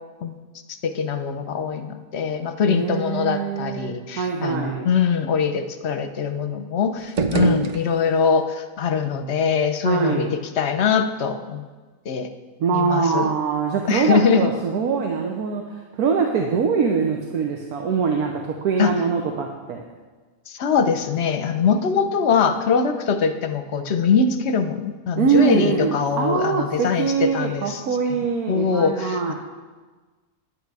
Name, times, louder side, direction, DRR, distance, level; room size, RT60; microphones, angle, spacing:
voice 1, 0.8-10.3 10.6-11.6 12.1-12.3 12.7-13.3 13.9-14.5 18.8-18.9 20.5-27.8 28.5-29.3, left 6 dB, 55° left, 8 dB, 0.9 m, -22 dB
voice 2, 2.7-4.9 9.8-10.4 12.6-19.8 25.2-29.3, right 5 dB, 85° right, 2 dB, 1.4 m, -23 dB
sound 1, 7.0-8.4, right 4 dB, 65° right, 0.4 m, -25 dB
10.5 x 9.2 x 4.8 m, 1.3 s
omnidirectional pair, 1.5 m